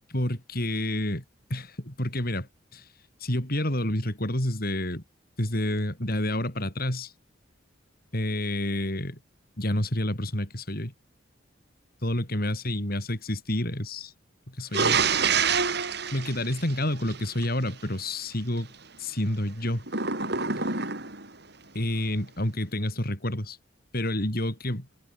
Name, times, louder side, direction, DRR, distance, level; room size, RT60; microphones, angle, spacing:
voice 1, 0.1-1.2 1.5-2.9 3.2-5.0 5.4-7.1 8.1-9.2 9.6-10.9 12.0-14.1 14.5-15.0 16.1-18.7 19.0-19.9 21.7-23.6 23.9-24.9, left 1 dB, 50° left, 6.0 m, -29 dB
sound 1, 14.7-17.5 19.9-21.3, right 5 dB, 60° right, 7.9 m, -26 dB
head